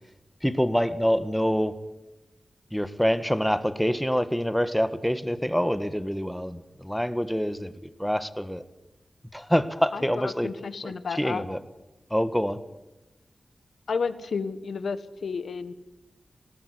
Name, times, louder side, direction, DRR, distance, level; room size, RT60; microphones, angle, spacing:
voice 1, 0.4-1.8 2.7-8.6 9.3-10.5 10.8-11.6 12.1-12.6, equal, ahead, 12 dB, 1.4 m, -26 dB
voice 2, 9.9-11.4 13.9-15.7, left 5 dB, 85° left, 13 dB, 1.4 m, -31 dB
20.0 x 18.0 x 9.9 m, 1.0 s
wide cardioid pair, 85°, 0 cm